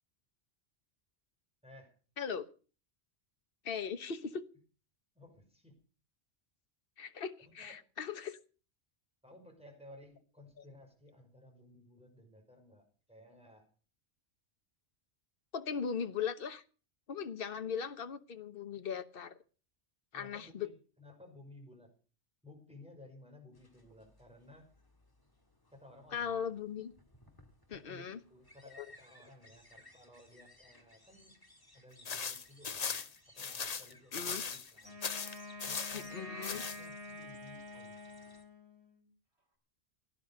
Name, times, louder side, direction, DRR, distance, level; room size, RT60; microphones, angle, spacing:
voice 1, 1.6-1.9 5.1-5.8 7.4-7.8 9.2-13.6 20.1-21.9 22.4-24.7 25.7-26.4 27.7-31.4 31.7-33.0 33.3-35.0 35.6-38.0, left 1 dB, 5° right, 2 dB, 5.6 m, -57 dB
voice 2, 2.2-2.5 3.6-4.4 7.0-8.4 15.5-16.6 17.1-19.4 20.1-20.7 26.1-26.9 27.7-28.2 28.8-28.9 34.1-34.4 35.9-36.6, left 7 dB, 55° left, 9 dB, 1.2 m, -39 dB
sound 1, 23.5-38.4, left 1 dB, 20° left, 2.0 m, -62 dB
sound 2, 32.0-34.7 35.0-36.1 36.4-36.8, left 5 dB, 40° left, 0.8 m, -38 dB
Wind instrument woodwind instrument, 34.8-39.1, left 1 dB, 75° right, 3.9 m, -48 dB
17.0 x 10.5 x 6.7 m, 0.39 s
omnidirectional pair, 1.1 m